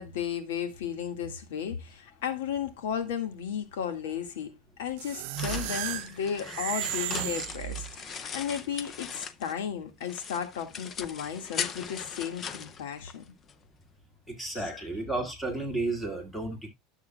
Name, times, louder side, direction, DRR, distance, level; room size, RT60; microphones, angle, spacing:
voice 1, 0.0-13.2 14.5-14.9, left 8 dB, 85° left, 1.8 m, -34 dB
sound 1, 4.9-9.7 10.0-13.5, left 7 dB, 25° left, 0.6 m, -39 dB
sound 2, 5.0-8.2, right 16 dB, 60° right, 0.6 m, -34 dB
voice 2, 14.3-16.7, right 2 dB, 5° left, 2.0 m, -32 dB
12.0 x 7.3 x 2.3 m
supercardioid pair, 165°, 0 cm